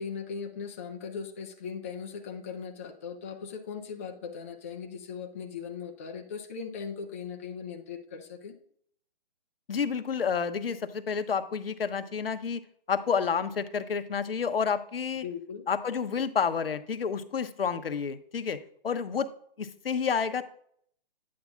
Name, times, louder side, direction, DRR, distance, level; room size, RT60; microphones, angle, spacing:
voice 1, 0.0-8.6 15.2-15.7, left 6 dB, 15° left, 2 dB, 0.4 m, -39 dB
voice 2, 9.7-12.6 12.9-15.2 15.7-19.3 19.6-20.4, left 6 dB, 80° left, 10 dB, 0.8 m, -30 dB
9.4 x 8.4 x 2.4 m, 0.64 s
hypercardioid pair, 145°, 29 cm